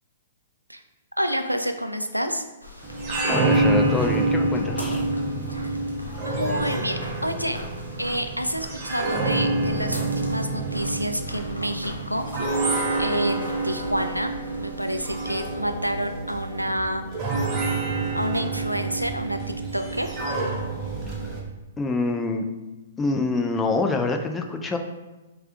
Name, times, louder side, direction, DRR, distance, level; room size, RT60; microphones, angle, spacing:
voice 1, 1.2-2.4 5.5-5.8 6.2-7.6 8.0-12.3 13.0-14.3 14.6-17.2 18.1-20.1, equal, 90° right, 6 dB, 0.3 m, -28 dB
sound 1, 2.6-15.5, left 1 dB, 85° left, 0.7 m, -40 dB
sound 2, 2.8-21.4, right 2 dB, 25° right, 0.7 m, -27 dB
voice 2, 3.3-5.1 21.8-22.5 23.0-24.8, left 3 dB, 10° left, 4 dB, 0.3 m, -26 dB
sound 3, 14.8-21.3, left 1 dB, 10° right, 1.4 m, -43 dB
5.5 x 2.3 x 2.4 m, 1.1 s
figure-of-eight pair, 115°, 0 cm